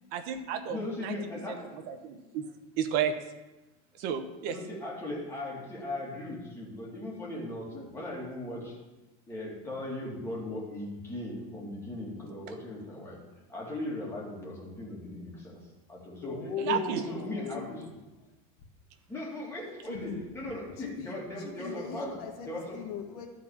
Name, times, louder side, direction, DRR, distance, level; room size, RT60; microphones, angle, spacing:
voice 1, 0.1-1.1 1.5-1.6 1.9-2.4 2.8-3.1 4.0-4.6 16.6-17.0, right 8 dB, 55° right, 8 dB, 1.0 m, -32 dB
voice 2, 0.7-1.8 4.5-8.7 9.3-13.2 13.5-15.6 15.9-16.8 17.1-17.9 19.1-22.1 22.5-22.8, left 1 dB, 15° left, -4 dB, 2.5 m, -38 dB
voice 3, 16.2-17.9 19.9-20.2 20.8-23.3, left 6 dB, 80° left, 1 dB, 1.7 m, -38 dB
12.5 x 4.3 x 7.1 m, 1.1 s
cardioid pair, 160°, 19 cm